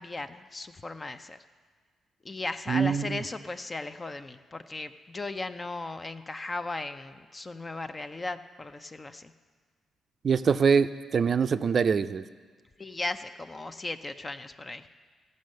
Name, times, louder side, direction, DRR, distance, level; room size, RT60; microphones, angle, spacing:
voice 1, 0.0-1.4 2.2-9.3 12.8-14.9, left 2 dB, 30° left, 9 dB, 0.5 m, -37 dB
voice 2, 2.7-3.2 10.2-12.2, right 6 dB, 55° right, 13 dB, 0.4 m, -24 dB
14.5 x 5.3 x 6.5 m, 1.5 s
supercardioid pair, 65°, 0 cm